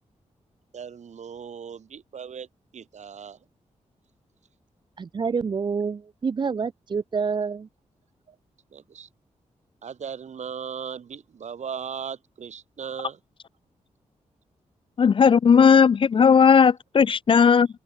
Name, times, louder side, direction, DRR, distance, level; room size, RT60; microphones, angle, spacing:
voice 1, 0.7-2.5 2.7-3.4 8.3-8.4 8.7-9.1 9.8-13.2, right 7 dB, 70° right, 7.9 m, -37 dB
voice 2, 5.0-7.7, right 5 dB, 40° right, 0.5 m, -27 dB
voice 3, 15.0-17.7, left 6 dB, 45° left, 0.4 m, -16 dB
wide cardioid pair, 95°, 12 cm